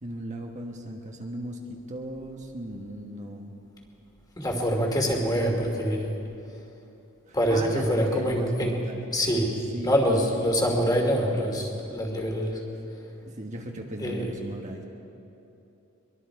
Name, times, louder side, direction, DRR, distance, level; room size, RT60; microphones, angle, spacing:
voice 1, 0.0-3.5 7.3-9.0 9.7-10.4 13.3-14.8, right 1 dB, 35° right, 1 dB, 1.4 m, -37 dB
voice 2, 4.4-6.1 7.3-8.8 9.1-9.6 9.8-12.6 14.0-14.3, equal, 20° left, 1 dB, 2.7 m, -25 dB
23.5 x 23.0 x 4.9 m, 2.9 s
head